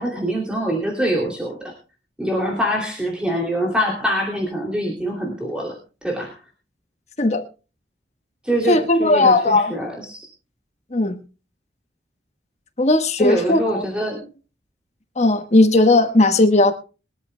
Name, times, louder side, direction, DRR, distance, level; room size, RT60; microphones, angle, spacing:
voice 1, 0.0-1.7 2.2-6.4 8.4-10.3 13.2-14.3, equal, 5° right, -1 dB, 2.7 m, -24 dB
voice 2, 8.7-9.7 10.9-11.2 12.8-13.8 15.1-16.7, left 2 dB, 35° left, 8 dB, 1.4 m, -16 dB
22.5 x 13.0 x 2.2 m, 0.33 s
head